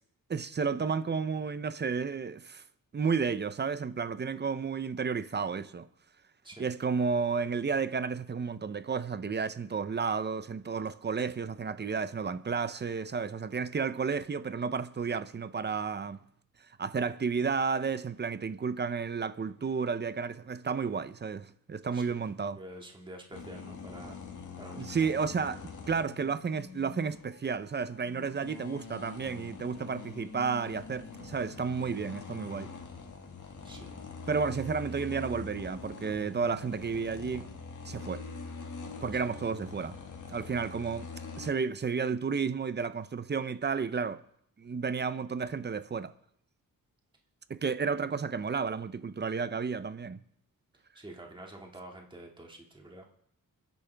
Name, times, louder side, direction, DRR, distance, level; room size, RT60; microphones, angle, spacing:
voice 1, 0.3-2.6 2.9-5.9 6.6-16.2 16.8-22.6 24.8-32.7 34.3-37.5 37.8-38.2 39.0-40.0 40.3-41.1 41.4-44.2 44.6-46.1 47.5-50.2, right 5 dB, 30° right, 0.6 m, -32 dB
voice 2, 22.6-24.2 24.6-25.1 33.6-33.9 39.1-39.2 51.0-53.1, right 1 dB, 15° right, 2.1 m, -47 dB
sound 1, 23.3-41.5, left 4 dB, 60° left, 2.0 m, -44 dB
30.0 x 10.5 x 3.5 m
wide cardioid pair, 145°, 34 cm